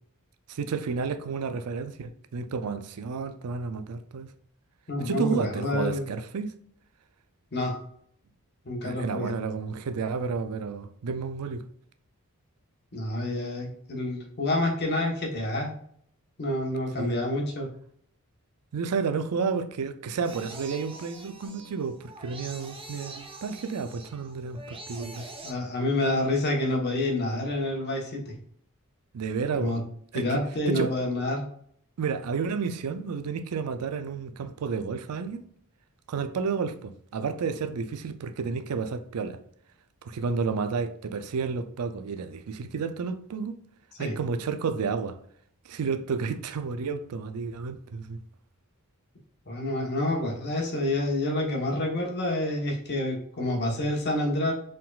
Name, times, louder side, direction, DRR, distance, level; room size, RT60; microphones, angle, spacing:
voice 1, 0.5-4.3 5.0-6.5 8.8-11.6 17.0-17.1 18.7-25.2 29.1-29.8 30.1-30.4 30.7-30.9 32.0-35.4 36.1-39.4 40.0-43.5 44.0-45.2 45.7-48.2, right 5 dB, 80° right, 0.4 m, -31 dB
voice 2, 4.9-6.1 7.5-7.8 8.6-9.3 12.9-15.7 16.4-17.7 25.4-28.3 29.5-29.8 30.1-31.4 44.0-44.1 49.5-54.5, left 1 dB, 50° left, 1.1 m, -28 dB
sound 1, 20.2-25.5, right 2 dB, 25° right, 0.8 m, -44 dB
4.5 x 3.8 x 2.4 m
head